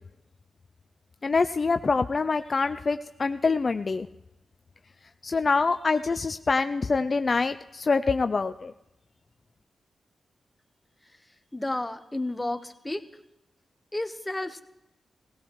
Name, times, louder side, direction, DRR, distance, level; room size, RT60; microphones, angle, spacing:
voice 1, 1.2-4.1 5.2-8.7, left 4 dB, 50° left, 10 dB, 0.4 m, -25 dB
voice 2, 11.5-13.0 13.9-14.6, left 1 dB, 15° left, 9 dB, 1.2 m, -31 dB
19.0 x 16.5 x 3.2 m, 0.90 s
supercardioid pair, 45°, 0 cm